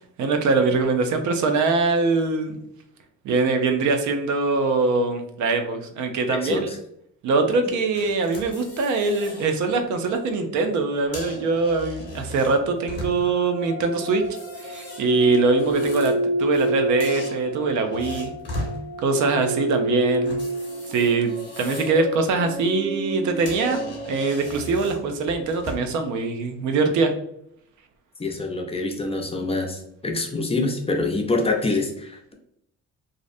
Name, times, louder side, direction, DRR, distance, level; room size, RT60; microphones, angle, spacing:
voice 1, 0.2-2.6 3.2-6.7 7.2-14.2 14.6-18.3 19.0-20.5 20.9-27.1, right 3 dB, 70° right, 6 dB, 0.5 m, -23 dB
voice 2, 6.3-6.8 28.2-32.3, left 3 dB, 20° left, 2 dB, 0.4 m, -26 dB
sound 1, 7.9-9.5 9.9-10.1 10.9-13.5 14.1-16.7 17.0-18.8 20.2-22.0 22.4-22.7 23.1-23.2 23.4-26.0, left 1 dB, 35° left, 1.0 m, -38 dB
sound 2, 12.7-24.5, right 1 dB, 25° right, 1.1 m, -29 dB
2.5 x 2.0 x 2.5 m, 0.76 s
cardioid pair, 90°, 30 cm